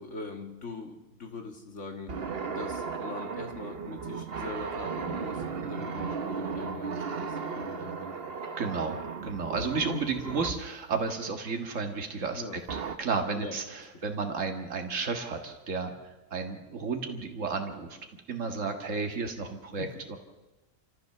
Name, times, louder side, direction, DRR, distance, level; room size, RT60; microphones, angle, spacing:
voice 1, 0.0-8.1 12.3-12.6 13.3-13.6 14.1-14.2 19.8-19.9, left 3 dB, 60° left, 4 dB, 2.4 m, -42 dB
sound 1, 2.1-10.7 12.7-13.0, right 5 dB, 50° right, 1.2 m, -35 dB
voice 2, 8.6-12.4 12.7-15.9 16.3-18.0 18.3-20.2, right 4 dB, 70° right, 4 dB, 2.1 m, -32 dB
28.0 x 14.5 x 6.8 m, 1.1 s
omnidirectional pair, 1.4 m